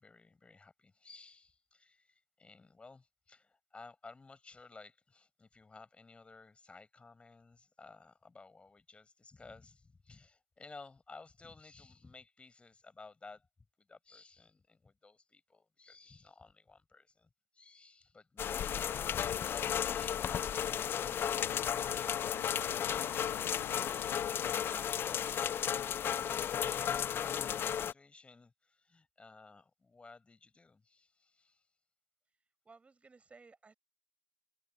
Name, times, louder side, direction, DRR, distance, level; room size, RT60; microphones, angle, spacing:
voice 1, 0.0-13.5 13.8-22.8 24.0-31.7, left 3 dB, 15° left, 5.8 m, -57 dB
sound 1, 18.4-27.9, left 9 dB, 35° left, 0.7 m, -34 dB
sound 2, 21.3-26.3, left 30 dB, 60° left, 2.1 m, -50 dB
voice 2, 32.6-33.8, right 4 dB, 20° right, 6.1 m, -58 dB
figure-of-eight pair, 65°, 7 cm